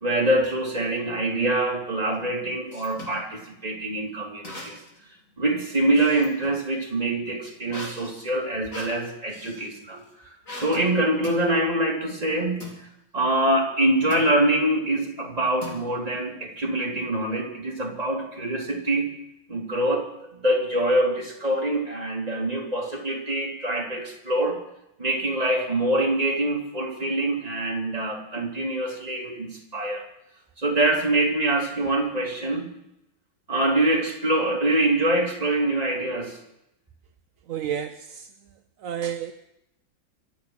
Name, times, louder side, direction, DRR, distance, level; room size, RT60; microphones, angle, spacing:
voice 1, 0.0-4.8 5.4-12.7 13.1-19.2 19.5-24.6 25.0-30.0 30.6-32.7 33.5-36.4, right 1 dB, 20° right, -1 dB, 2.9 m, -25 dB
sound 1, 2.1-3.2 4.4-5.0 5.4-6.6 7.7-9.7 10.5-10.9 11.2-11.5 12.6-12.8 14.1-14.4 15.6-16.2, left 2 dB, 40° left, 3.8 m, -40 dB
voice 2, 37.5-38.3 38.8-39.3, right 9 dB, 65° right, 7 dB, 0.9 m, -31 dB
25.0 x 8.3 x 6.3 m, 0.83 s
omnidirectional pair, 2.1 m